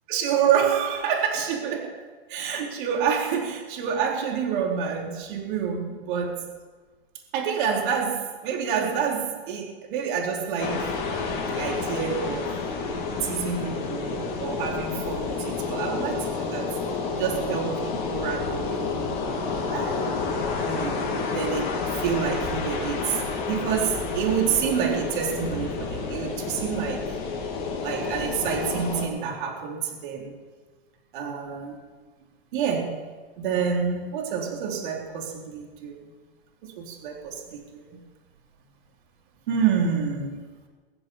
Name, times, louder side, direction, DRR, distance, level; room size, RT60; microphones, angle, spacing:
voice 1, 0.1-1.9 2.3-6.5 7.3-10.9 11.5-12.5 13.2-16.7 17.2-19.1 19.7-20.2 20.7-27.0 27.8-30.4 31.1-31.8 32.5-33.0 33.4-36.0 36.6-38.0 39.5-40.5, right 7 dB, 55° right, 0 dB, 3.8 m, -28 dB
sound 1, 10.6-29.1, left 4 dB, 30° left, 3.5 m, -30 dB
22.5 x 7.8 x 7.2 m, 1.4 s
supercardioid pair, 150°, 30 cm